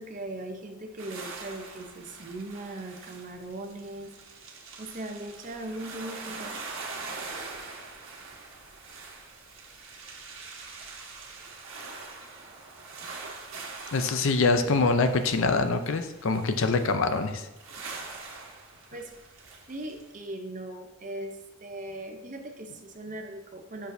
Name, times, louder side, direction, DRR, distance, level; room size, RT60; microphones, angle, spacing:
voice 1, 0.0-4.1 4.8-6.6 18.9-19.1 19.7-23.9, right 1 dB, 35° right, 4 dB, 0.7 m, -39 dB
sound 1, 1.0-20.1, right 4 dB, 60° right, 1.3 m, -43 dB
voice 2, 13.9-17.5, left 3 dB, 60° left, 8 dB, 0.5 m, -24 dB
7.9 x 6.2 x 2.7 m, 0.96 s
head